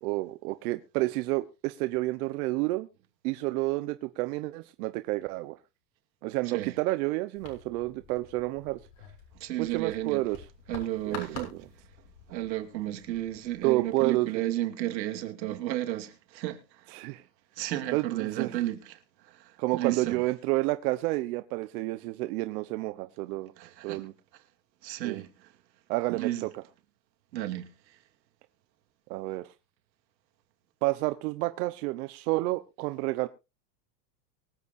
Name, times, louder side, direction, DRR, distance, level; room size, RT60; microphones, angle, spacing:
voice 1, 0.0-2.9 3.2-5.6 6.2-8.8 9.6-10.4 11.1-11.6 13.6-14.4 16.9-17.2 17.9-18.6 19.6-23.5 23.8-24.1 25.0-25.2 25.9-26.5 29.1-29.5 30.8-33.3, right 20 dB, 60° right, 1.1 m, -30 dB
sound 1, 7.3-13.9, left 6 dB, 60° left, 7.4 m, -48 dB
voice 2, 9.4-10.2 10.7-11.7 12.3-16.9 17.6-20.2 23.6-24.0 24.8-25.5 26.1-26.5 27.3-27.7, right 14 dB, 90° right, 2.6 m, -33 dB
24.0 x 8.4 x 2.7 m
supercardioid pair, 145°, 50 cm